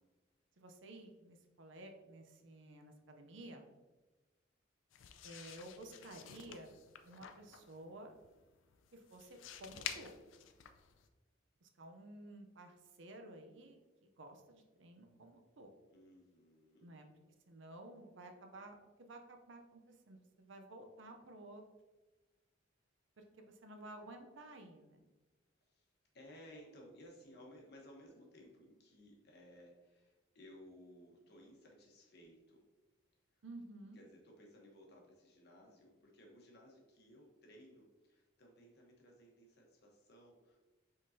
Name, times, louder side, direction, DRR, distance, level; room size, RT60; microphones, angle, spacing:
voice 1, 0.6-3.6 5.2-6.7 7.0-8.1 8.9-10.1 11.6-15.7 16.8-17.1 17.5-21.6 23.2-25.0 33.4-34.0, right 1 dB, 70° right, 4 dB, 0.6 m, -53 dB
sound 1, 4.9-11.1, left 9 dB, 75° left, 0.4 m, -50 dB
voice 2, 15.9-16.9 25.6-25.9 26.1-32.7 33.3-33.4 33.9-40.6, equal, 55° left, 0 dB, 1.0 m, -59 dB
5.2 x 3.8 x 2.7 m, 1.2 s
head